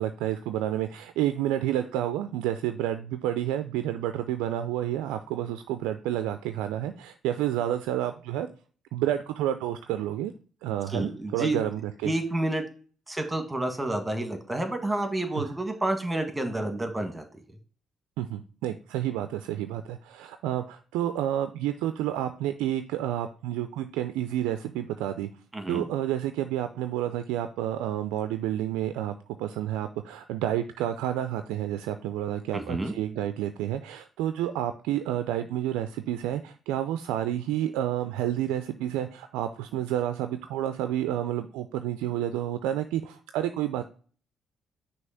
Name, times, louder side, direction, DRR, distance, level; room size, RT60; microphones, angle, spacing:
voice 1, 0.0-8.5 8.9-10.3 10.6-12.1 15.4-15.5 18.2-25.3 25.7-43.8, right 12 dB, 85° right, 9 dB, 0.3 m, -30 dB
voice 2, 10.9-11.6 12.0-12.6 13.1-17.4 25.5-25.9 32.5-32.9, right 1 dB, 15° right, 5 dB, 1.6 m, -29 dB
6.2 x 2.9 x 5.6 m, 0.41 s
hypercardioid pair, 55°, 0 cm